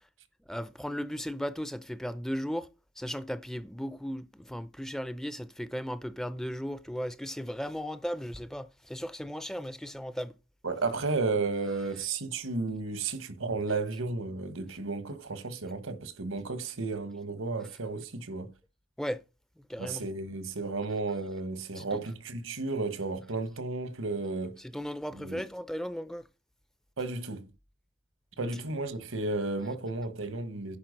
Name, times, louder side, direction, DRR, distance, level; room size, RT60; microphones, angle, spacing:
voice 1, 0.5-2.7 3.0-10.3 19.0-19.2 19.7-20.1 21.8-21.9 24.6-26.2, equal, ahead, 0.4 m, -36 dB
voice 2, 10.6-18.5 19.8-24.6 25.1-25.4 27.0-27.5 28.4-30.8, right 3 dB, 80° right, 1.4 m, -33 dB
10.5 x 4.4 x 6.5 m
head